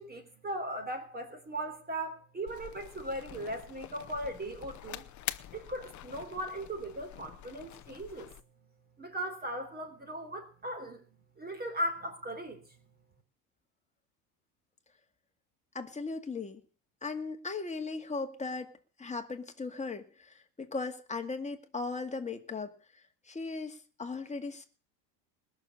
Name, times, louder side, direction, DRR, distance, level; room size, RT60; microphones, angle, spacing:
voice 1, 0.0-5.1 5.5-8.3 9.0-11.0 11.4-12.6, right 1 dB, 20° right, 7 dB, 3.5 m, -38 dB
sound 1, 2.5-8.4, left 13 dB, 35° left, 0.9 m, -45 dB
voice 2, 15.7-16.6 17.0-18.7 19.0-24.6, left 4 dB, 15° left, 5 dB, 2.1 m, -38 dB
20.5 x 7.0 x 8.3 m, 0.41 s
supercardioid pair, 105°, 48 cm